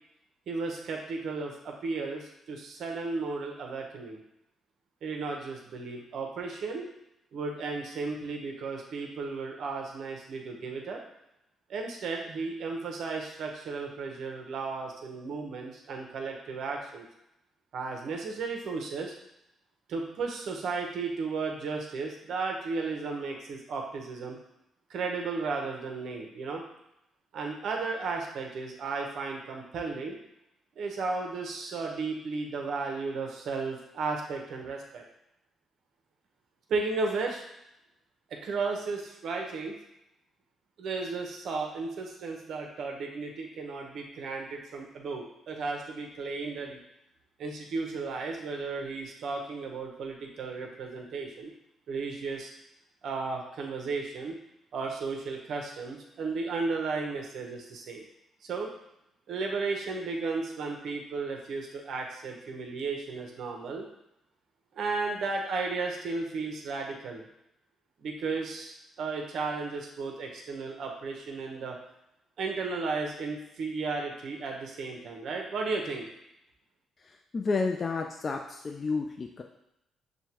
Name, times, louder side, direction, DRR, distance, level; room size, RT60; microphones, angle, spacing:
voice 1, 0.5-4.2 5.0-6.9 7.3-11.0 11.7-17.1 17.7-19.1 19.9-24.4 24.9-26.6 27.3-30.2 30.8-35.0 36.7-37.4 38.3-39.7 40.8-46.8 47.4-51.5 51.9-52.5 53.0-54.4 54.7-58.0 58.4-58.7 59.3-63.8 64.7-67.2 68.0-71.8 72.4-76.1, right 4 dB, 65° right, 1 dB, 0.8 m, -34 dB
voice 2, 77.3-79.4, left 4 dB, 40° left, 2 dB, 0.4 m, -30 dB
6.3 x 2.2 x 2.9 m, 0.83 s
cardioid pair, 90°, 0 cm